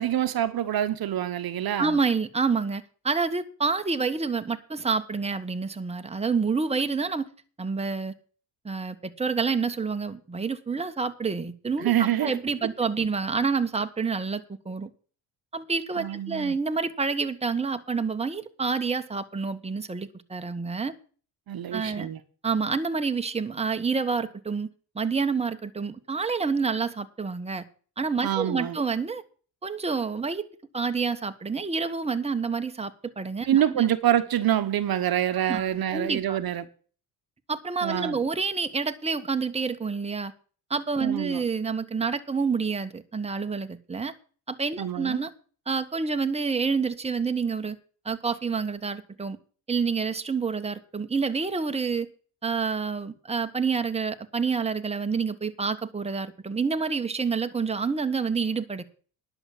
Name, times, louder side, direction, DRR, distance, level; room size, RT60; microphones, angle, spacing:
voice 1, 0.0-2.0 11.8-12.4 16.0-16.6 21.5-22.2 28.2-28.8 33.5-36.6 37.8-38.2 41.0-41.4 44.8-45.2, right 11 dB, 55° right, 1.1 m, -26 dB
voice 2, 1.8-7.3 7.6-8.1 8.6-14.9 15.5-20.9 21.7-22.1 22.4-24.7 24.9-27.6 28.0-29.2 29.6-30.4 30.7-33.9 35.5-35.7 35.9-36.4 37.5-40.3 40.7-44.1 44.5-45.3 45.7-47.8 48.0-49.4 49.7-52.1 52.4-58.8, right 5 dB, 15° right, 1.2 m, -28 dB
11.0 x 7.0 x 7.2 m
supercardioid pair, 70°, 43 cm